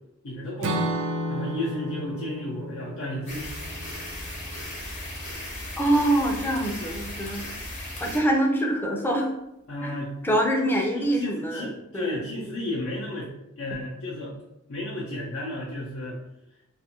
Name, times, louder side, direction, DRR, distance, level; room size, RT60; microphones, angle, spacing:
voice 1, 0.2-0.9 1.3-3.5 9.7-10.1 10.9-13.3 13.6-14.4 14.7-16.2, left 1 dB, 80° left, -6 dB, 0.6 m, -33 dB
Acoustic guitar / Strum, 0.6-4.7, right 1 dB, 75° right, 0.3 m, -32 dB
sound 1, 3.3-8.2, left 1 dB, 35° left, 0.8 m, -36 dB
voice 2, 5.8-7.5 8.0-9.3 9.8-10.0 10.2-12.2, right 1 dB, 10° left, 1 dB, 0.4 m, -25 dB
2.5 x 2.4 x 2.8 m, 0.86 s
head